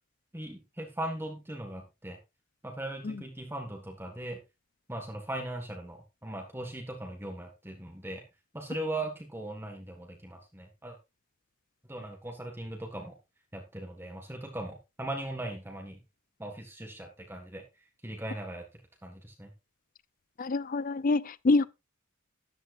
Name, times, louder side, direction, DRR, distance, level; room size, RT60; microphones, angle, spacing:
voice 1, 0.3-2.2 2.6-4.4 4.9-8.2 8.5-11.0 11.9-13.1 13.5-16.0 16.4-17.6 18.0-18.6 19.0-19.5, right 1 dB, 10° right, 1.6 m, -39 dB
voice 2, 20.4-21.7, left 3 dB, 40° left, 0.4 m, -26 dB
13.0 x 11.0 x 2.5 m
head